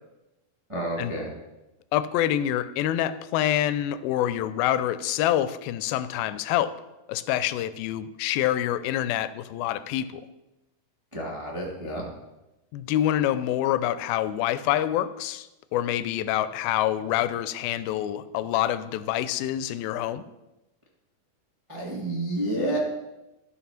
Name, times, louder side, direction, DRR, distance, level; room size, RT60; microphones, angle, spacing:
voice 1, 0.7-1.3 11.1-12.0 21.7-22.8, right 1 dB, 20° right, -3 dB, 0.7 m, -30 dB
voice 2, 1.9-6.7 7.1-10.2 12.7-20.2, left 12 dB, 85° left, 14 dB, 2.4 m, -26 dB
13.0 x 5.8 x 5.8 m, 1.0 s
omnidirectional pair, 4.2 m